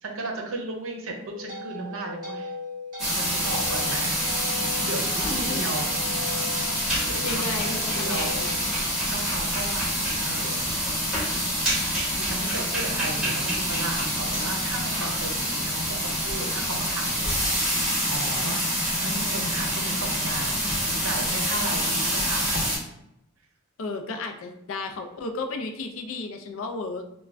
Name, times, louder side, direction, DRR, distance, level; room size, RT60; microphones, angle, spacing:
voice 1, 0.0-2.5 3.2-4.1 4.6-5.9 6.9-8.3 9.1-10.7 12.1-17.8 18.1-18.7 19.0-22.5, right 2 dB, 80° right, 1 dB, 0.6 m, -35 dB
sound 1, 1.0-9.3, left 2 dB, 20° right, 1.0 m, -39 dB
sound 2, 3.0-22.8, equal, ahead, 1.1 m, -26 dB
voice 2, 5.3-5.6 7.2-8.5 23.8-27.0, left 3 dB, 75° left, 5 dB, 0.4 m, -33 dB
2.4 x 2.2 x 3.2 m, 0.82 s
head